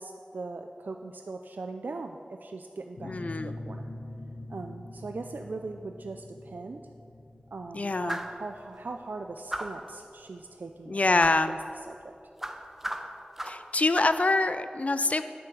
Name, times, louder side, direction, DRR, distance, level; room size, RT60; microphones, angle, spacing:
voice 1, 0.0-3.9 4.5-6.8 7.5-11.6 11.9-12.2, right 3 dB, 90° right, 5 dB, 0.4 m, -40 dB
sound 1, 3.0-12.4, left 1 dB, 80° left, 1.2 m, -44 dB
voice 2, 3.0-3.5 7.7-8.2 10.9-11.5 13.4-15.2, left 2 dB, 50° left, 11 dB, 0.3 m, -25 dB
sound 2, 8.1-8.4 9.5-9.9 11.2-11.4 12.4-13.7 13.9-14.2, right 1 dB, 10° right, 0.7 m, -35 dB
9.5 x 7.1 x 6.1 m, 2.5 s
wide cardioid pair, 70°, 3 cm